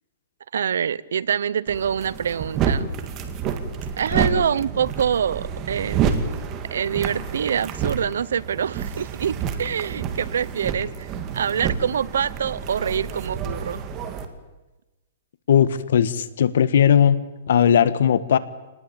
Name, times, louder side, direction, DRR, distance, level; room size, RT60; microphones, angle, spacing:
voice 1, 0.5-2.9 4.0-6.0 6.7-11.1 11.3-13.8, right 8 dB, 85° right, 20 dB, 0.8 m, -25 dB
sound 1, 1.7-14.3, right 7 dB, 25° right, 2.0 m, -29 dB
voice 2, 15.5-17.2 17.5-18.4, left 8 dB, 70° left, 14 dB, 1.6 m, -18 dB
26.5 x 20.0 x 8.7 m, 1.1 s
hypercardioid pair, 165°, 0 cm